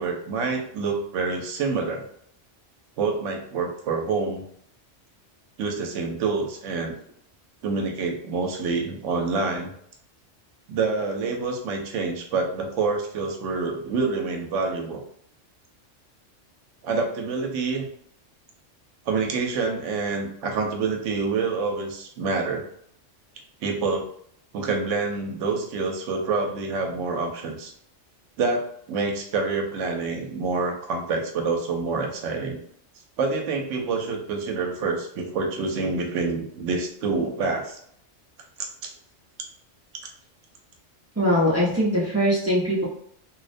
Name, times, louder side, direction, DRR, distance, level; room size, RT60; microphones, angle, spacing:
voice 1, 0.0-2.0 3.0-4.4 5.6-6.9 7.6-9.7 10.7-15.0 16.8-17.9 19.1-22.7 23.6-24.1 24.5-27.7 28.4-32.6 33.2-37.8 38.6-38.9, right 4 dB, 80° right, 2 dB, 0.9 m, -27 dB
voice 2, 41.2-42.8, equal, 25° right, -7 dB, 0.3 m, -21 dB
2.4 x 2.1 x 2.5 m, 0.67 s
omnidirectional pair, 1.3 m